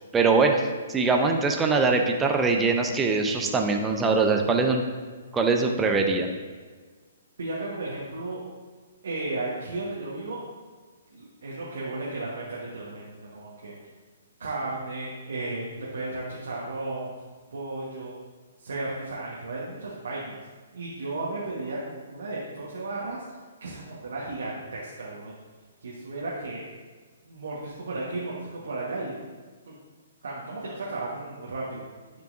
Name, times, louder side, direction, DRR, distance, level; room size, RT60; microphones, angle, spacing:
voice 1, 0.1-0.6 0.9-4.8 5.3-6.3, right 4 dB, 15° right, 3 dB, 0.6 m, -22 dB
voice 2, 7.4-8.4 9.0-10.4 11.1-13.7 14.4-17.1 17.5-18.1 18.6-20.4 20.7-23.2 23.6-25.4 25.8-26.7 27.2-29.2 29.7-29.8 30.2-31.8, right 2 dB, 65° right, -5 dB, 1.3 m, -34 dB
11.5 x 4.6 x 2.6 m, 1.4 s
figure-of-eight pair, 125°, 0 cm